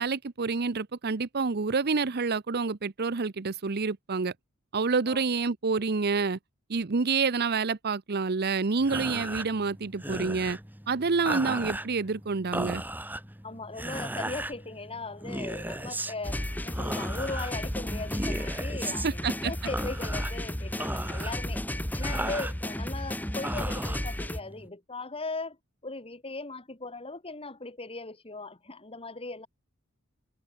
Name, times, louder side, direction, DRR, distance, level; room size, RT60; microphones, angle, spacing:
voice 1, 0.0-4.3 4.7-6.4 6.7-10.6 10.9-12.8 19.0-19.5, right 4 dB, 50° right, 0.7 m, -28 dB
sound 1, 8.8-24.7, right 1 dB, 10° right, 3.6 m, -37 dB
voice 2, 13.4-21.6 21.9-25.6 25.8-29.5, left 3 dB, 25° left, 2.7 m, -38 dB
sound 2, 16.2-24.4, left 1 dB, 10° left, 1.2 m, -33 dB
head